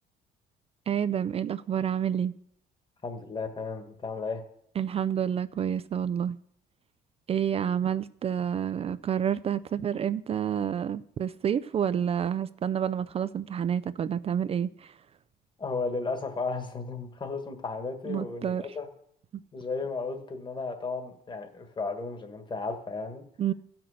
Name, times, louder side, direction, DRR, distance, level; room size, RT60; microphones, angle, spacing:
voice 1, 0.9-2.4 4.8-6.4 7.3-14.9 18.1-18.6 23.4-23.5, right 8 dB, 35° right, 0.4 m, -29 dB
voice 2, 3.0-4.4 15.6-18.9 19.5-23.2, left 4 dB, 25° left, 1.6 m, -34 dB
15.0 x 6.0 x 6.4 m
cardioid pair, 110°, 17 cm